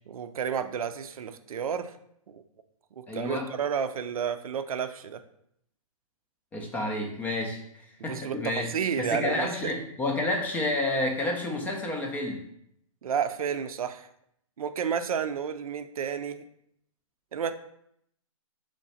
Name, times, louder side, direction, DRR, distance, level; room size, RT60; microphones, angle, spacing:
voice 1, 0.1-1.9 2.3-2.4 3.0-5.2 8.0-9.7 13.0-14.1 14.6-16.5 17.3-17.5, right 7 dB, 80° right, 10 dB, 0.4 m, -31 dB
voice 2, 3.1-3.5 6.5-7.6 8.0-8.7 9.0-12.4, left 2 dB, 10° left, 2 dB, 0.4 m, -29 dB
3.8 x 3.3 x 4.0 m, 0.72 s
hypercardioid pair, 145°, 18 cm